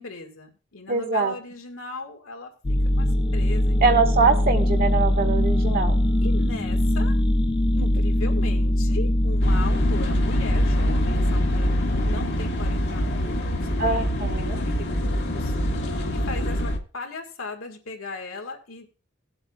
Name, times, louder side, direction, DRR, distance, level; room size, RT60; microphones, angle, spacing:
voice 1, 0.0-2.5 2.9-4.0 6.2-7.2 7.7-14.1 14.4-18.9, left 3 dB, 85° left, 3 dB, 1.8 m, -38 dB
voice 2, 0.9-1.3 3.8-6.0 7.8-7.9 13.8-14.6, right 4 dB, 50° right, 6 dB, 1.5 m, -23 dB
sound 1, 2.6-12.1, left 1 dB, 25° left, 0.5 m, -21 dB
sound 2, 9.4-16.8, equal, 60° left, 1.5 m, -26 dB
18.5 x 8.0 x 2.3 m, 0.36 s
head